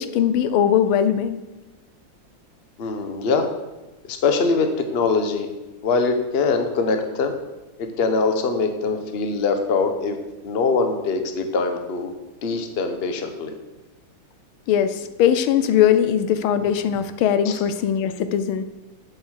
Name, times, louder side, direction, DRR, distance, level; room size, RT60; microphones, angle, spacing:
voice 1, 0.0-1.4 14.7-18.6, left 9 dB, 85° left, 11 dB, 1.5 m, -20 dB
voice 2, 2.8-3.5 4.1-5.5 5.8-7.3 7.8-10.1 10.4-12.1 12.4-13.5 17.5-17.6, left 4 dB, 40° left, 6 dB, 0.9 m, -22 dB
8.3 x 7.3 x 6.4 m, 1.1 s
omnidirectional pair, 2.3 m